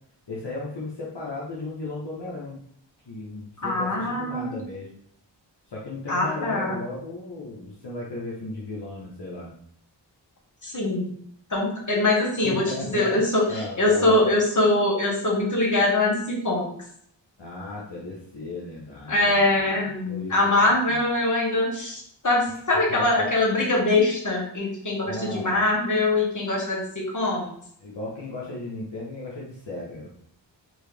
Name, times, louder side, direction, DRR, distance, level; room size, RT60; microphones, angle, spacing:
voice 1, 0.3-2.6 3.1-4.9 5.7-9.5 12.4-14.3 17.4-21.0 22.9-23.3 25.1-25.6 27.8-30.1, left 2 dB, 65° left, -5 dB, 1.1 m, -36 dB
voice 2, 3.6-4.6 6.1-6.8 10.6-11.1 11.5-16.7 19.1-27.5, left 2 dB, 40° left, -3 dB, 1.6 m, -23 dB
4.5 x 2.9 x 3.4 m, 0.64 s
wide cardioid pair, 50°, 45 cm